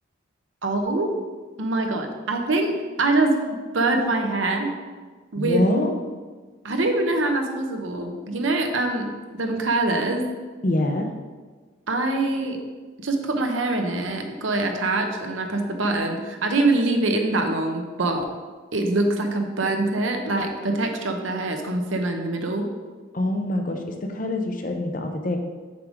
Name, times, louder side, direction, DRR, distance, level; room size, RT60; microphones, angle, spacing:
voice 1, 0.6-1.1 1.6-4.7 5.3-5.7 6.6-10.2 11.9-12.6 13.0-18.3 18.7-22.7, right 2 dB, 75° right, 4 dB, 0.9 m, -24 dB
voice 2, 5.3-5.9 10.6-11.1 23.1-25.4, left 1 dB, 40° left, 4 dB, 0.6 m, -25 dB
7.7 x 3.6 x 4.9 m, 1.4 s
head